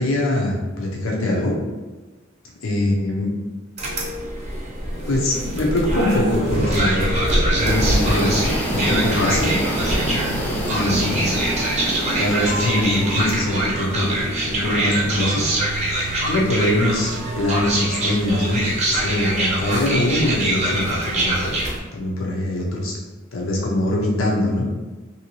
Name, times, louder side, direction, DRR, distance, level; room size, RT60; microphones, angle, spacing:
voice 1, 0.0-1.6 2.6-3.3 5.1-7.2 7.6-8.4 8.7-9.5 10.6-11.4 12.2-15.4 16.0-21.6 21.9-23.0 23.3-24.6, left 1 dB, 75° left, -2 dB, 0.6 m, -23 dB
sound 1, 3.8-21.8, right 1 dB, 35° right, 0.7 m, -24 dB
sound 2, 6.2-18.7, right 3 dB, 70° right, 0.4 m, -34 dB
sound 3, 7.6-13.4, equal, 10° left, 0.5 m, -26 dB
3.1 x 2.7 x 3.0 m, 1.2 s
head